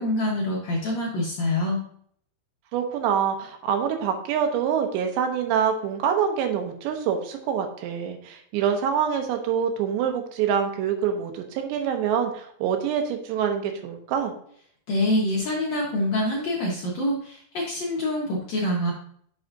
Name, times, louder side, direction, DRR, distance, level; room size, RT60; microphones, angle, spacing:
voice 1, 0.0-1.8 14.9-18.9, left 1 dB, 70° left, -3 dB, 1.6 m, -25 dB
voice 2, 2.7-14.3, right 8 dB, 90° right, 4 dB, 3.3 m, -25 dB
9.8 x 6.4 x 2.6 m, 0.64 s
omnidirectional pair, 4.9 m